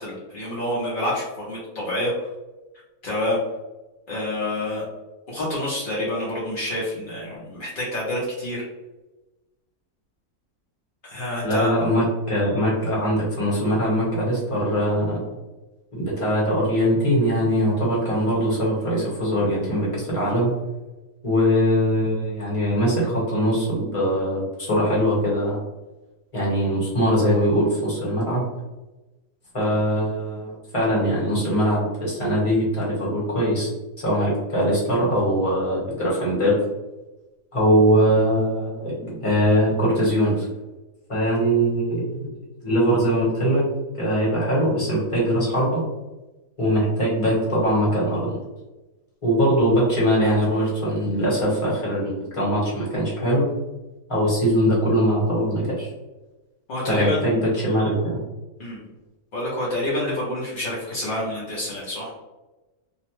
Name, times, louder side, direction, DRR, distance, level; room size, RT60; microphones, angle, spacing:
voice 1, 0.0-2.3 3.0-3.4 4.1-4.9 5.3-8.6 11.0-11.7 56.7-57.4 58.6-58.8 59.3-62.1, left 1 dB, 65° left, -6 dB, 0.5 m, -27 dB
voice 2, 11.4-15.2 15.9-20.5 21.2-25.6 26.3-28.4 29.5-33.7 34.0-36.6 37.5-40.5 41.1-42.3 42.6-43.6 44.0-45.8 46.6-48.4 49.2-53.4 54.1-55.9 56.9-58.2, equal, 25° left, -6 dB, 0.9 m, -21 dB
2.8 x 2.0 x 3.0 m, 1.1 s
omnidirectional pair, 1.7 m